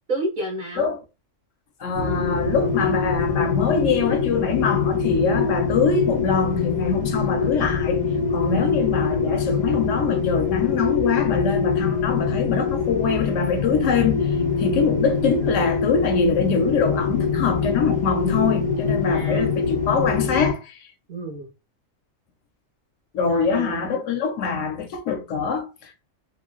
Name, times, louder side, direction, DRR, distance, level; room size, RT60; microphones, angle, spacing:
voice 1, 0.1-0.9 8.3-8.7 14.6-14.9 19.1-19.5 21.1-21.5 23.2-24.0, right 2 dB, 45° right, 0.7 m, -31 dB
voice 2, 1.8-8.0 8.3-14.3 14.6-20.8 23.1-26.0, left 5 dB, 75° left, 0.9 m, -24 dB
sound 1, 1.9-20.5, left 5 dB, 10° left, 0.3 m, -23 dB
3.1 x 2.2 x 2.2 m
omnidirectional pair, 1.4 m